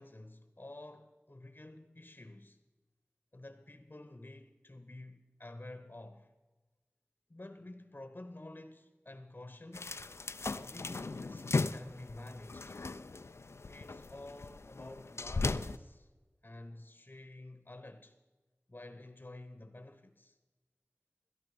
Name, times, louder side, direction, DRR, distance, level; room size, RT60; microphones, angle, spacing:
voice 1, 0.0-2.6 3.3-6.3 7.3-10.0 10.5-12.8 13.7-16.1 16.4-18.2 18.7-20.4, left 2 dB, 45° left, 1.0 m, -50 dB
sound 1, 9.7-15.8, left 3 dB, 80° left, 0.5 m, -37 dB
17.0 x 13.0 x 5.0 m
wide cardioid pair, 55°, 5 cm